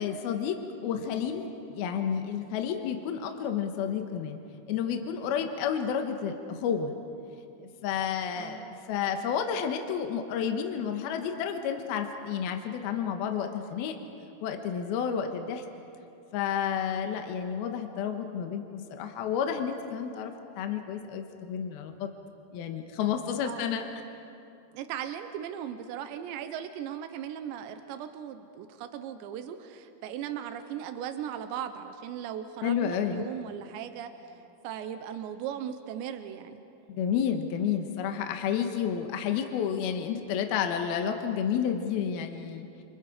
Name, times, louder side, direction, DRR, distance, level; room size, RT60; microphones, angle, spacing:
voice 1, 0.0-4.4 4.7-6.9 7.6-14.0 14.4-15.6 16.3-22.1 22.5-23.9 32.6-33.3 36.9-42.7, left 8 dB, 70° left, 5 dB, 2.8 m, -31 dB
voice 2, 8.4-8.7 23.4-23.7 24.7-34.1 34.6-36.6, right 9 dB, 90° right, 8 dB, 3.3 m, -38 dB
30.0 x 28.0 x 5.1 m, 2.7 s
omnidirectional pair, 5.0 m